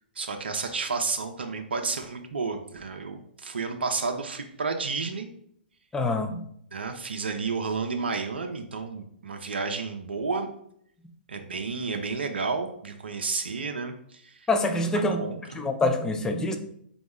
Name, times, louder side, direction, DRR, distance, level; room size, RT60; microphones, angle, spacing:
voice 1, 0.2-5.3 6.7-10.5 11.3-14.5 15.2-15.6, right 4 dB, 75° right, 5 dB, 0.5 m, -31 dB
voice 2, 5.9-6.4 14.5-16.6, left 2 dB, 10° left, 6 dB, 0.4 m, -26 dB
3.8 x 3.0 x 3.6 m, 0.69 s
figure-of-eight pair, 120°, 6 cm